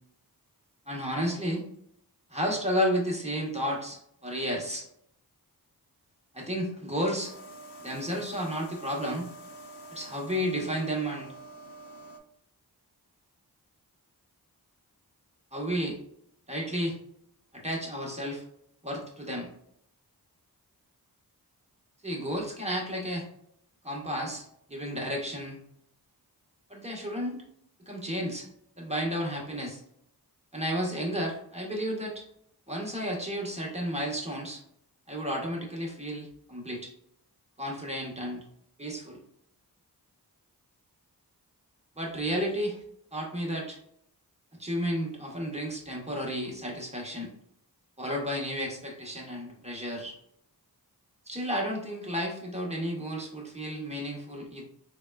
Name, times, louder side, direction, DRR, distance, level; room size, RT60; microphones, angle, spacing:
voice 1, 0.9-1.7 2.3-4.9 6.3-7.3 7.8-9.3 9.9-11.3 15.5-16.0 16.5-17.0 17.5-18.4 18.8-19.5 22.0-23.3 23.8-25.6 26.7-27.4 27.8-28.5 28.8-29.8 30.5-32.2 32.7-34.6 35.1-36.9 37.6-38.4 38.8-39.2 41.9-42.8 43.1-43.8 44.6-47.3 48.0-50.2 51.3-54.6, equal, 15° right, -2 dB, 1.0 m, -32 dB
sound 1, 7.2-12.2, right 1 dB, 85° left, 0.6 m, -47 dB
3.5 x 2.2 x 2.3 m, 0.71 s
wide cardioid pair, 45°, 40 cm